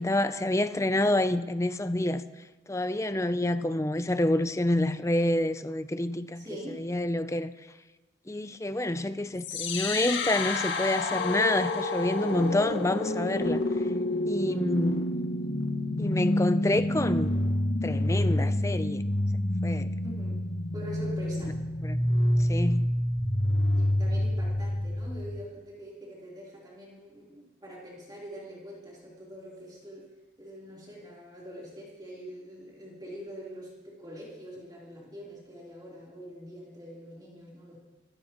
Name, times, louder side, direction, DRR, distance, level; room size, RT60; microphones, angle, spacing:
voice 1, 0.0-2.2 2.7-6.4 6.8-7.5 8.3-13.6 14.3-15.1 16.0-17.3 17.8-19.0 19.6-19.9 21.4-21.5 21.8-22.0 22.4-22.9, left 1 dB, 15° left, 0.5 m, -28 dB
voice 2, 6.4-6.8 14.5-14.8 20.0-20.4 20.7-21.6 23.7-30.1 30.4-37.8, equal, 20° right, 3.7 m, -44 dB
sound 1, 9.4-25.4, left 1 dB, 75° left, 2.0 m, -28 dB
24.5 x 15.5 x 3.1 m
head